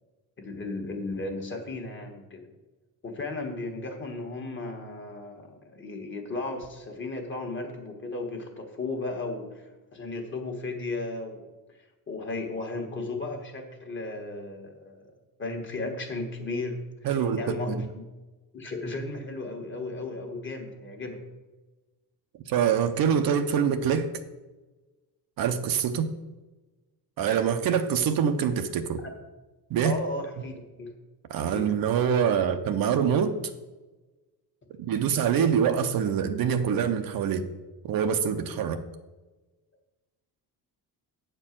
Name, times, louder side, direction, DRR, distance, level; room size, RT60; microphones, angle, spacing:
voice 1, 0.4-2.4 3.0-11.5 12.1-15.0 15.4-18.1 18.5-21.2 29.0-29.1 29.8-30.9 31.5-31.8, left 2 dB, 30° left, 3 dB, 1.4 m, -35 dB
voice 2, 17.0-17.8 22.5-24.1 25.4-26.1 27.2-29.0 29.7-30.0 31.3-33.4 34.8-37.5 37.8-38.8, right 7 dB, 60° right, 7 dB, 0.7 m, -25 dB
8.7 x 4.5 x 7.4 m, 1.2 s
cardioid pair, 165°, 39 cm